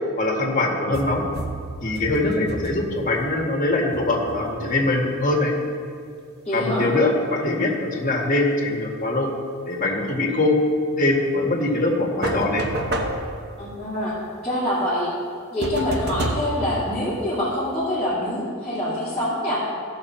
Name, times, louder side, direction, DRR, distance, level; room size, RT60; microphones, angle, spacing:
voice 1, 0.2-1.2 1.8-5.5 6.5-9.3 9.7-10.6 11.0-12.6, left 2 dB, 35° left, -1 dB, 1.6 m, -22 dB
sound 1, 0.9-3.4 3.9-5.1 12.2-13.9 15.6-17.6, right 1 dB, 45° right, 1.1 m, -30 dB
voice 2, 6.4-6.9 13.6-14.2 14.4-15.1 15.5-19.6, left 1 dB, 5° left, -13 dB, 2.7 m, -25 dB
15.5 x 6.6 x 4.4 m, 2.2 s
head